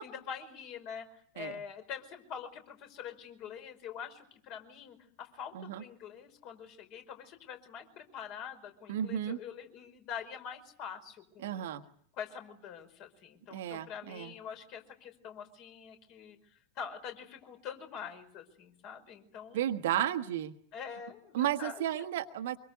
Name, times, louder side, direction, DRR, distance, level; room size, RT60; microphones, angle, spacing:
voice 1, 0.0-11.7 12.1-19.8 20.7-22.1, left 7 dB, 40° left, 6 dB, 5.1 m, -45 dB
voice 2, 8.9-9.4 11.4-11.8 13.5-14.3 19.5-20.6 21.3-22.6, right 11 dB, 55° right, 9 dB, 1.5 m, -33 dB
25.5 x 23.0 x 8.1 m, 0.63 s
figure-of-eight pair, 90°, 0 cm